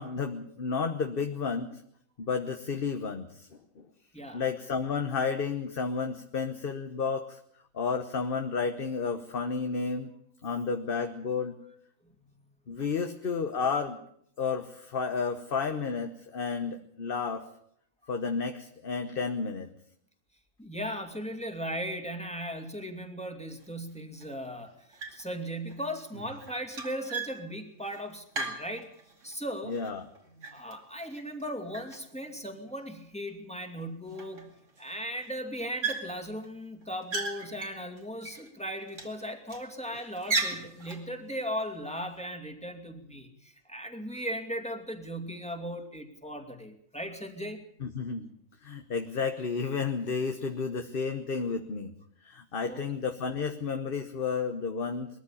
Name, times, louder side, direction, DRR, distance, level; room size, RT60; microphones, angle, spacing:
voice 1, 0.0-1.8 2.2-3.5 3.8-3.9 4.3-7.4 7.7-10.1 10.4-11.5 12.7-14.0 14.4-17.5 18.1-19.7 29.6-30.0 47.8-48.3 48.6-51.9 52.2-55.1, left 5 dB, 45° left, 6 dB, 1.3 m, -31 dB
voice 2, 20.6-24.7 25.1-28.9 29.2-29.8 30.5-47.6 52.7-52.8, equal, 5° left, 4 dB, 2.4 m, -37 dB
sound 1, 23.6-23.7 24.2-24.6 24.9-25.4 25.7-29.3 29.7-31.4 31.7-32.7 33.3-33.4 33.6-33.7 34.1-34.8 35.1-35.3 35.8-36.5 36.8-38.5 38.9-39.7 40.1-41.1, right 4 dB, 65° right, 2.9 m, -37 dB
21.5 x 14.0 x 8.6 m, 0.68 s
omnidirectional pair, 1.4 m